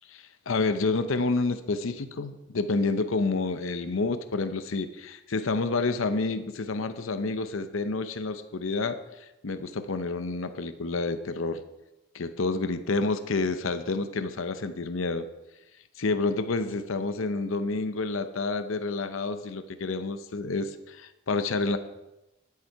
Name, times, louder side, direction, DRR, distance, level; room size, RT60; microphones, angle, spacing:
voice 1, 0.1-11.6 12.1-15.3 16.0-21.8, left 3 dB, 80° left, 10 dB, 0.7 m, -29 dB
11.0 x 8.4 x 4.7 m, 0.96 s
head